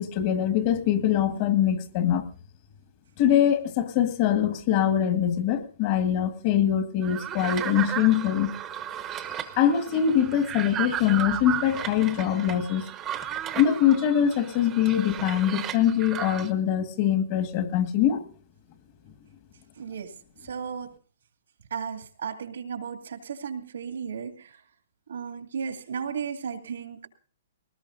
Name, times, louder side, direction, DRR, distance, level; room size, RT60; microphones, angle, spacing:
voice 1, 0.0-2.2 3.2-8.5 9.6-12.9 13.5-18.2, left 10 dB, 40° left, 7 dB, 1.7 m, -23 dB
sound 1, 7.0-16.5, right 10 dB, 20° right, 0.9 m, -35 dB
voice 2, 19.8-20.1 20.4-20.9 21.7-24.6 25.1-27.1, right 6 dB, 85° right, 3 dB, 2.4 m, -34 dB
20.5 x 19.0 x 2.6 m, 0.41 s
hypercardioid pair, 150°, 0 cm